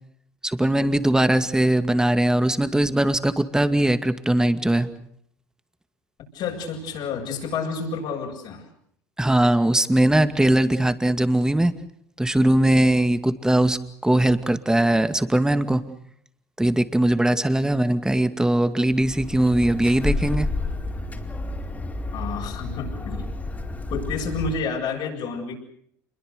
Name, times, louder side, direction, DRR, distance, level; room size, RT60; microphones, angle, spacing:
voice 1, 0.4-4.9 9.2-11.7 12.2-15.8 16.6-20.5, right 1 dB, 5° right, 10 dB, 2.2 m, -20 dB
voice 2, 6.3-8.6 22.1-23.2 23.9-25.6, left 5 dB, 60° left, -1 dB, 7.8 m, -29 dB
sound 1, 18.9-24.6, left 2 dB, 20° left, 4.5 m, -30 dB
28.0 x 22.5 x 6.8 m, 0.68 s
hypercardioid pair, 70°, 9 cm